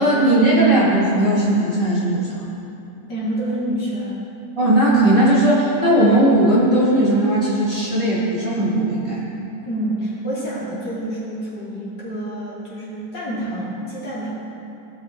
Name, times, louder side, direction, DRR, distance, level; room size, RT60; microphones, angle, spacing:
voice 1, 0.0-2.3 4.6-9.2, right 1 dB, 20° right, -8 dB, 1.7 m, -17 dB
voice 2, 3.1-4.2 9.7-14.3, right 1 dB, 70° left, -7 dB, 2.8 m, -27 dB
15.5 x 6.4 x 3.2 m, 2.8 s
omnidirectional pair, 1.9 m